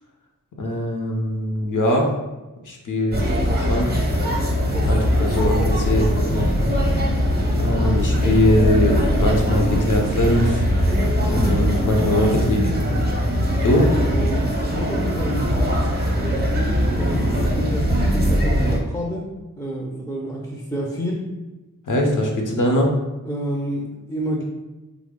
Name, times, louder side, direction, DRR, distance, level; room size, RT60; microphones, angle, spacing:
voice 1, 0.6-2.1 2.7-3.2 3.6-3.9 4.9-5.6 5.9-6.7 7.6-10.6 11.3-12.7 13.6-13.9 21.9-22.9, left 1 dB, 65° left, 1 dB, 0.7 m, -21 dB
sound 1, 3.1-18.8, equal, 30° right, 0.7 m, -21 dB
voice 2, 4.7-5.3 5.6-6.2 13.7-16.4 16.9-19.3 19.6-21.2 23.3-24.4, equal, 5° left, -2 dB, 0.5 m, -30 dB
3.2 x 2.0 x 3.5 m, 1.1 s
cardioid pair, 50°, 33 cm